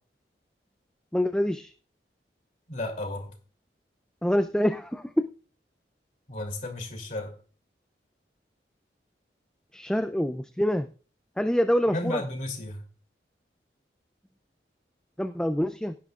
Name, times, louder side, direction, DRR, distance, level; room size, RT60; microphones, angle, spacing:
voice 1, 1.1-1.7 4.2-5.3 9.7-10.9 11.4-12.2 15.2-16.0, equal, 5° left, 9 dB, 0.4 m, -26 dB
voice 2, 2.7-3.3 6.3-7.3 11.9-12.8, left 1 dB, 45° left, 3 dB, 3.0 m, -33 dB
17.0 x 10.0 x 2.4 m, 0.39 s
head